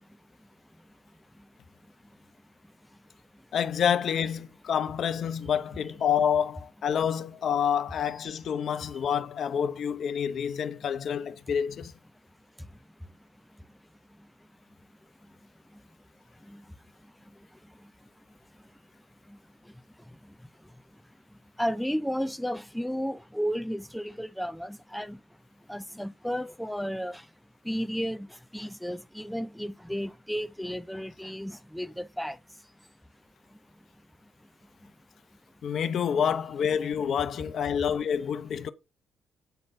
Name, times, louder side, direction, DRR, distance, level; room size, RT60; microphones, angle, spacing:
voice 1, 3.5-11.9 35.6-38.7, left 8 dB, 60° left, 0.8 m, -28 dB
voice 2, 21.6-25.2 25.7-27.2 27.7-28.3 28.5-32.4, equal, ahead, 0.5 m, -33 dB
9.1 x 4.0 x 5.2 m
cardioid pair, 90°, 0 cm